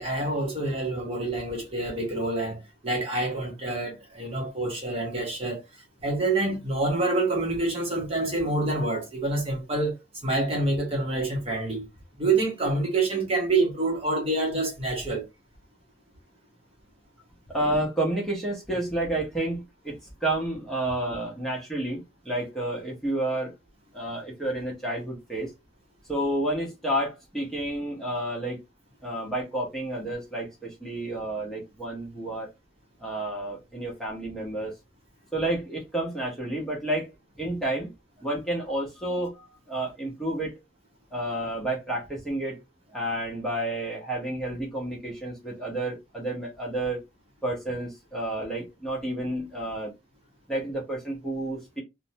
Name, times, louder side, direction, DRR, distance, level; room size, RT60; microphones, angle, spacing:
voice 1, 0.0-5.6 6.0-11.8 12.2-15.2, right 2 dB, 30° right, 0.8 m, -27 dB
voice 2, 17.5-23.5 23.9-25.5 26.1-28.6 29.0-32.5 33.0-34.7 35.3-37.9 38.2-40.6 41.1-42.6 42.9-47.0 47.4-49.9 50.5-51.8, right 1 dB, ahead, 0.8 m, -30 dB
2.5 x 2.1 x 2.7 m
head